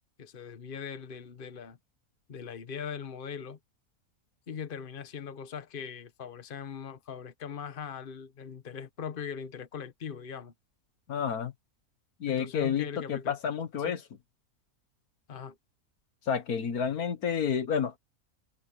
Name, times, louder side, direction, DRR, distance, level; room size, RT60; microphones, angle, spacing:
voice 1, 0.2-1.8 2.3-3.6 4.5-10.5 12.3-13.4 13.8-14.0 15.3-15.6, left 7 dB, 40° left, 1.3 m, -40 dB
voice 2, 11.1-11.5 12.2-14.0 16.3-18.0, left 7 dB, 85° left, 1.9 m, -30 dB
omnidirectional pair, 1.5 m